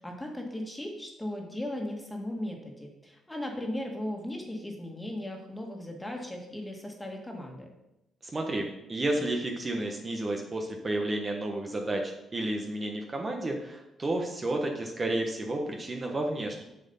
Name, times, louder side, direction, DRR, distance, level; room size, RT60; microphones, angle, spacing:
voice 1, 0.0-7.7, left 1 dB, 10° left, 1 dB, 2.1 m, -37 dB
voice 2, 8.2-16.6, right 1 dB, 30° right, 2 dB, 1.3 m, -31 dB
7.5 x 6.3 x 5.6 m, 0.89 s
cardioid pair, 90°, 0 cm